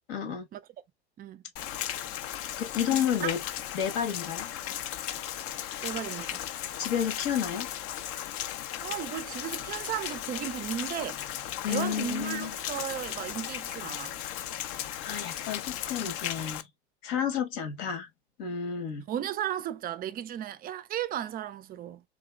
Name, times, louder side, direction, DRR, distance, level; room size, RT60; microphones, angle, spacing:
voice 1, 0.1-0.4 2.6-3.4 3.7-4.5 6.8-7.7 11.6-12.5 15.0-16.6 17.0-18.1 18.4-19.0, left 8 dB, 65° left, 1.2 m, -31 dB
Rain, 1.6-16.6, left 11 dB, 45° left, 0.5 m, -36 dB
voice 2, 2.9-3.3 5.8-6.5 8.8-11.2 11.7-14.2 19.1-22.0, right 10 dB, 30° right, 0.4 m, -35 dB
3.8 x 2.9 x 2.2 m
hypercardioid pair, 95°, 32 cm